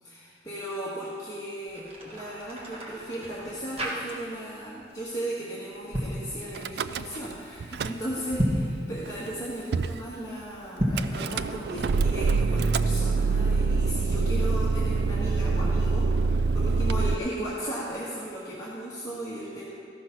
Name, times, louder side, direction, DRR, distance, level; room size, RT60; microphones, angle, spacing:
voice 1, 0.0-19.6, right 1 dB, 20° left, -8 dB, 1.5 m, -36 dB
sound 1, 1.6-4.6 4.8-5.1 5.7-6.2 8.2-8.8 10.7-11.2, equal, 30° right, 1.5 m, -31 dB
Car / Engine starting / Idling, 6.6-7.3 7.6-8.4 9.1-9.2 9.3-9.4 9.7-10.0 11.0-17.1, right 4 dB, 60° right, 0.3 m, -25 dB
14.0 x 6.1 x 5.9 m, 2.3 s
head